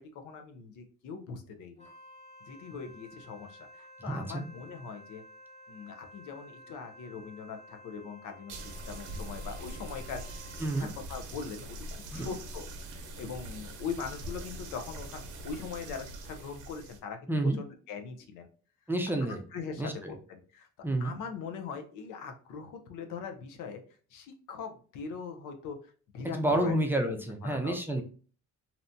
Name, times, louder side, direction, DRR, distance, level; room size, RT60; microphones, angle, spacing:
voice 1, 0.0-1.9 2.5-5.2 5.7-17.3 17.6-18.5 19.3-20.7 21.0-23.8 24.1-25.8 26.1-26.7 27.1-28.0, left 5 dB, 90° left, 5 dB, 0.6 m, -41 dB
Wind instrument woodwind instrument, 1.8-11.1, left 1 dB, 20° left, 0.9 m, -53 dB
voice 2, 4.1-4.5 10.6-10.9 12.1-12.3 17.3-17.6 18.9-19.4 19.8-20.1 20.8-21.1 26.3-28.0, right 1 dB, 5° right, 3 dB, 0.5 m, -29 dB
sound 1, 8.5-17.0, right 1 dB, 85° right, 0.6 m, -43 dB
2.7 x 2.1 x 2.5 m, 0.39 s
cardioid pair, 90°, 30 cm